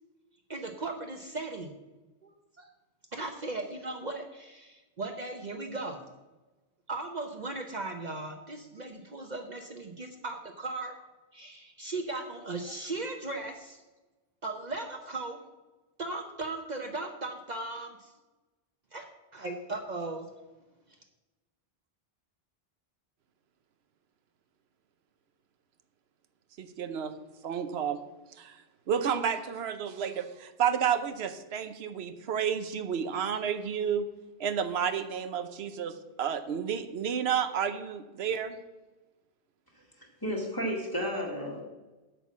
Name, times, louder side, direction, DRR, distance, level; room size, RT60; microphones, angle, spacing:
voice 1, 0.5-1.8 2.2-2.7 3.1-6.1 6.9-11.0 11.3-13.8 14.4-15.4 16.0-18.1 18.9-19.1 19.3-20.3, right 2 dB, 45° right, 4 dB, 0.9 m, -37 dB
voice 2, 26.6-27.1 27.4-28.0 28.4-28.5 28.9-34.1 34.4-38.6, right 8 dB, 85° right, 9 dB, 1.0 m, -31 dB
voice 3, 40.0-41.6, equal, 20° left, -2 dB, 2.0 m, -33 dB
8.4 x 5.7 x 7.2 m, 1.1 s
omnidirectional pair, 1.0 m